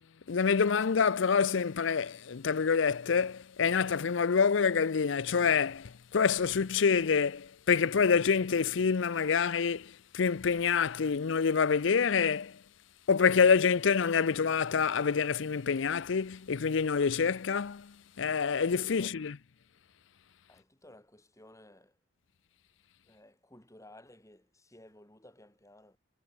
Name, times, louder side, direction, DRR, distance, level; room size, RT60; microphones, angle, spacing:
voice 1, 0.3-12.6 13.1-19.4, left 6 dB, 65° left, 0.5 m, -27 dB
voice 2, 18.6-19.2 20.5-22.0 23.0-26.0, left 1 dB, 15° left, 4.5 m, -56 dB
head